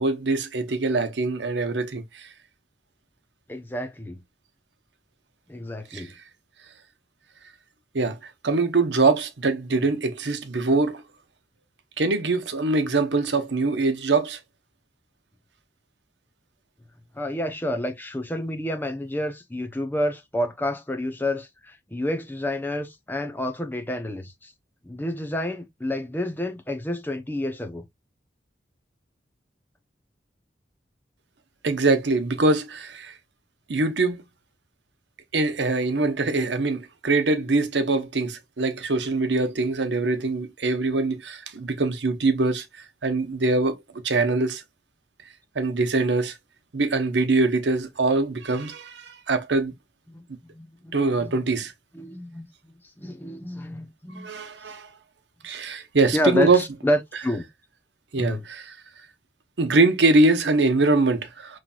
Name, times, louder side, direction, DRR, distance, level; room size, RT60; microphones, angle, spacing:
voice 1, 0.0-2.3 5.9-6.1 7.9-11.0 12.0-14.4 31.6-33.2 33.7-34.2 35.3-42.6 43.0-44.6 45.5-46.4 46.7-49.7 50.9-51.7 54.2-54.9 55.4-56.6 58.1-58.7 59.6-61.6, right 3 dB, 80° right, 0.8 m, -23 dB
voice 2, 3.5-4.2 5.5-6.1 17.1-24.5 24.8-27.8 50.1-50.9 51.2-51.4 51.9-54.3 56.1-57.5 58.1-58.4, left 1 dB, 10° left, 0.7 m, -29 dB
5.7 x 3.2 x 2.3 m
head